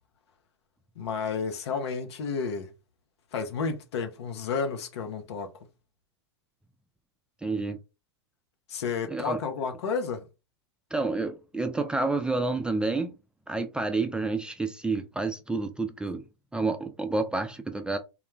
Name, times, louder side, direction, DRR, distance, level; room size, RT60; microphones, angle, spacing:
voice 1, 1.0-2.7 3.3-5.5 8.7-10.3, left 5 dB, 70° left, 0.7 m, -31 dB
voice 2, 7.4-7.8 9.1-9.4 10.9-13.1 13.5-16.2 16.5-18.0, right 3 dB, 5° right, 0.3 m, -29 dB
2.3 x 2.1 x 3.1 m
hypercardioid pair, 105°, 14 cm